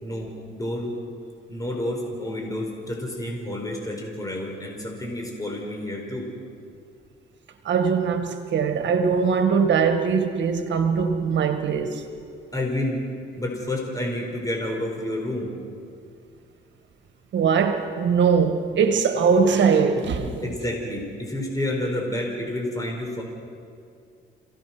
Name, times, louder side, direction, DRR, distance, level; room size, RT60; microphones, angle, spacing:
voice 1, 0.0-0.9 1.5-6.3 12.5-13.0 13.4-15.5 20.4-23.2, left 1 dB, 15° left, 4.8 m, -29 dB
voice 2, 7.7-12.0 17.3-20.5, right 6 dB, 65° right, 1.9 m, -21 dB
28.0 x 17.5 x 6.1 m
cardioid pair, 90°, 20 cm